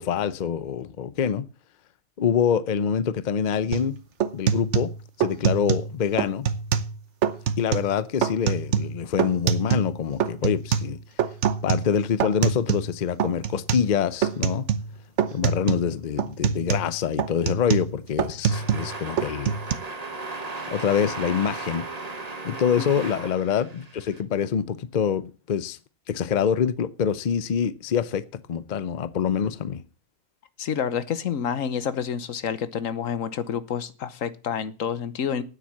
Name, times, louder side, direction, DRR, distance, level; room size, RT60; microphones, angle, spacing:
voice 1, 0.0-1.5 2.2-4.0 4.3-6.5 7.6-11.0 11.6-14.7 15.3-19.5 20.7-21.9 22.4-25.8 26.1-29.8, left 7 dB, 45° left, 0.7 m, -25 dB
sound 1, 3.7-3.9 4.2-5.9 6.2-6.9 7.2-7.9 8.2-9.9 10.2-12.9 13.2-13.9 14.2-14.9 15.2-15.9 16.2-18.9 19.2-19.7, right 7 dB, 65° right, 1.2 m, -25 dB
sound 2, 18.4-24.2, right 3 dB, 30° right, 1.5 m, -36 dB
voice 2, 30.6-35.4, left 7 dB, 85° left, 1.4 m, -28 dB
9.4 x 7.8 x 7.3 m
omnidirectional pair, 1.3 m